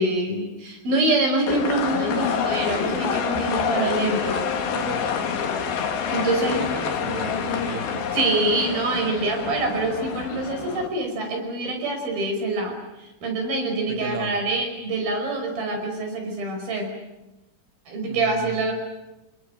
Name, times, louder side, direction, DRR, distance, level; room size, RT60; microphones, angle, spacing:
voice 1, 0.0-4.4 6.1-6.6 8.1-16.9 17.9-18.7, right 2 dB, 80° right, 4 dB, 7.3 m, -25 dB
sound 1, 1.5-10.9, left 7 dB, 85° left, 4.0 m, -27 dB
voice 2, 4.7-5.1 6.1-8.1 13.9-14.4 18.1-18.6, right 4 dB, 30° right, 5 dB, 1.9 m, -35 dB
29.5 x 20.0 x 9.0 m, 1.0 s
omnidirectional pair, 4.1 m